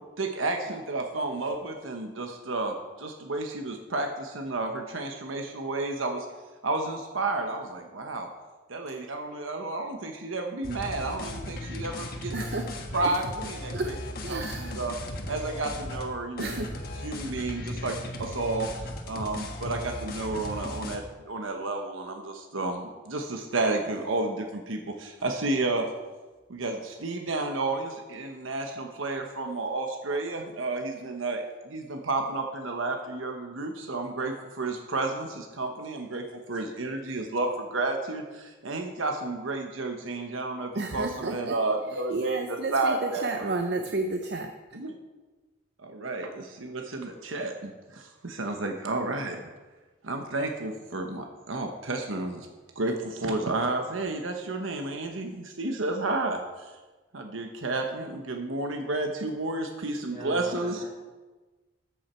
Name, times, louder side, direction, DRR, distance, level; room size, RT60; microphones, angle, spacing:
voice 1, 0.2-6.3 6.6-8.3 8.7-12.3 12.9-13.9 14.3-14.9 15.3-16.5 17.0-18.7 19.0-25.9 26.5-43.5 44.7-44.9 45.8-49.4 50.0-52.5 52.8-56.7 57.1-60.8, right 2 dB, 80° right, 4 dB, 1.0 m, -31 dB
sound 1, 10.6-16.1 16.4-21.0, left 1 dB, 45° left, 1.3 m, -37 dB
voice 2, 12.3-12.7 13.0-13.1 13.7-13.9 14.2-14.7 16.4-16.7 40.7-41.6 41.9-44.5, right 2 dB, 55° right, 5 dB, 0.6 m, -31 dB
voice 3, 60.1-60.8, equal, 25° right, -4 dB, 4.1 m, -39 dB
13.5 x 8.4 x 4.4 m, 1.2 s
head